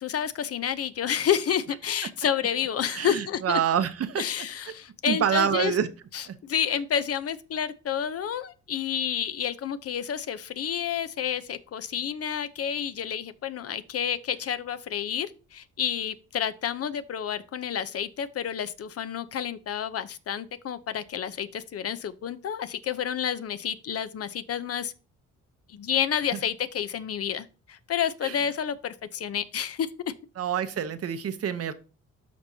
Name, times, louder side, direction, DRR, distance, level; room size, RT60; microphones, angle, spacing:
voice 1, 0.0-3.6 4.2-5.7 6.1-24.9 25.7-30.1, left 9 dB, 50° left, 0.7 m, -30 dB
voice 2, 2.9-4.2 5.1-5.9 6.2-6.4 26.3-26.4 28.2-28.4 30.4-31.7, right 8 dB, 50° right, 0.9 m, -27 dB
12.5 x 4.4 x 2.8 m
cardioid pair, 90°, 30 cm